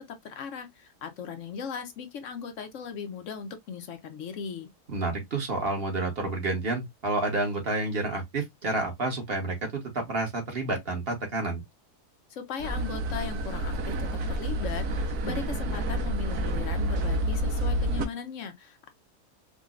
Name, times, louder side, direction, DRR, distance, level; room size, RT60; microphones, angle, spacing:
voice 1, 0.0-4.7 12.3-18.9, left 6 dB, 60° left, 0.9 m, -38 dB
voice 2, 4.9-11.6, right 2 dB, 40° right, 1.3 m, -29 dB
sound 1, 12.6-18.0, right 1 dB, 75° right, 1.3 m, -29 dB
5.0 x 2.3 x 2.4 m
omnidirectional pair, 1.7 m